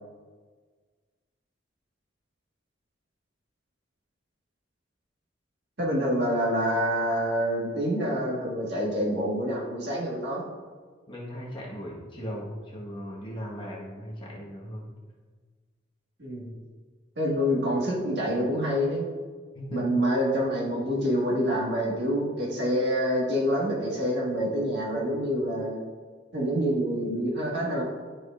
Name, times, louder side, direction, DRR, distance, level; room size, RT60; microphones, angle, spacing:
voice 1, 5.8-10.4 16.2-16.5 17.2-19.1 19.7-25.8 26.3-27.8, equal, 60° right, -4 dB, 1.9 m, -27 dB
voice 2, 11.1-14.9 19.5-20.0, equal, 25° left, -4 dB, 1.4 m, -38 dB
12.0 x 5.0 x 2.5 m, 1.5 s
head